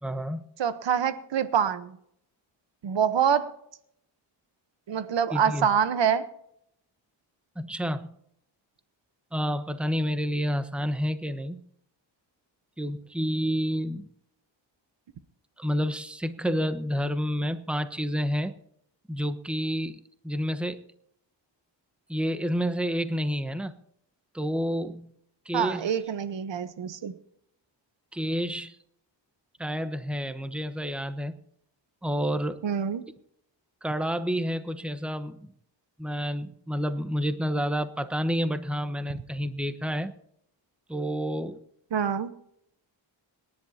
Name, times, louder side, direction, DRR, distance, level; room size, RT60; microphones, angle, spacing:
voice 1, 0.0-0.5 5.3-5.7 7.6-8.2 9.3-11.6 12.8-14.1 15.6-18.5 19.1-20.0 20.2-20.8 22.1-23.8 24.3-25.1 25.4-25.9 28.1-28.8 29.6-31.3 32.0-32.6 33.8-35.5 36.0-40.1 40.9-41.6, equal, ahead, 10 dB, 1.0 m, -29 dB
voice 2, 0.6-1.9 2.8-3.5 4.9-6.3 25.5-27.1 32.6-33.0 41.9-42.3, right 8 dB, 70° right, 13 dB, 1.1 m, -25 dB
26.0 x 11.0 x 2.8 m, 0.74 s
cardioid pair, 85°, 45 cm